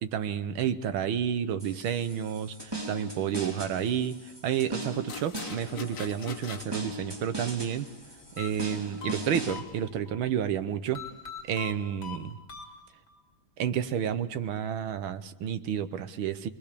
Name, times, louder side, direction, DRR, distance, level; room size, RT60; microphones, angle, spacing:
voice 1, 0.0-7.9 8.4-11.0 11.5-12.4 13.6-16.5, right 9 dB, 80° right, 11 dB, 1.8 m, -30 dB
sound 1, 1.6-9.6, right 2 dB, 10° right, 2.8 m, -39 dB
sound 2, 5.1-10.1, left 7 dB, 50° left, 1.3 m, -45 dB
sound 3, 8.4-10.2 10.9-13.2, left 7 dB, 70° left, 3.3 m, -43 dB
26.5 x 21.5 x 6.8 m, 1.0 s
omnidirectional pair, 2.2 m